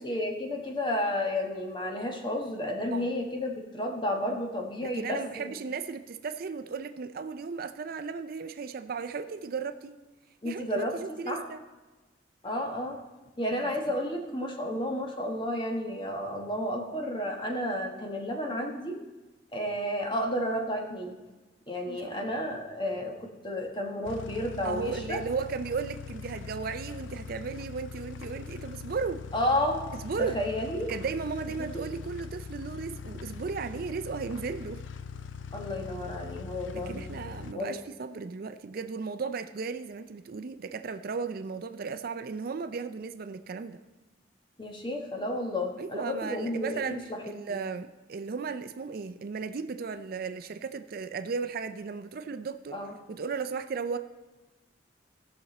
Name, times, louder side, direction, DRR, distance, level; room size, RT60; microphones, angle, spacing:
voice 1, 0.0-5.5 10.4-10.9 11.3-11.4 12.4-13.0 13.4-19.0 19.5-21.1 21.7-25.2 29.3-29.8 30.3-30.9 31.7-31.9 35.5-37.0 37.5-37.8 44.6-47.2 52.7-52.9, left 1 dB, 25° left, 2 dB, 1.3 m, -32 dB
voice 2, 4.8-10.0 10.4-11.6 13.6-13.7 21.9-22.5 24.6-29.2 29.9-30.4 30.9-34.8 36.7-43.8 45.8-47.0 47.2-52.8 53.1-54.0, right 5 dB, 50° right, 9 dB, 0.4 m, -35 dB
sound 1, 24.0-37.5, left 5 dB, 75° left, 0.4 m, -42 dB
16.5 x 6.0 x 4.1 m, 1.2 s
head